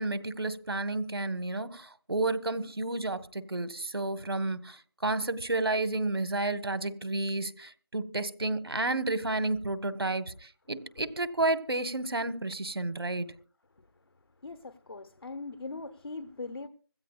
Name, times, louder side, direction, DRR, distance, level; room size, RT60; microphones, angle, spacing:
voice 1, 0.0-13.3, right 2 dB, 80° right, 1.4 m, -31 dB
voice 2, 13.8-14.1 14.4-16.7, left 3 dB, 75° left, 1.1 m, -41 dB
25.0 x 14.5 x 2.4 m
figure-of-eight pair, 165°, 13 cm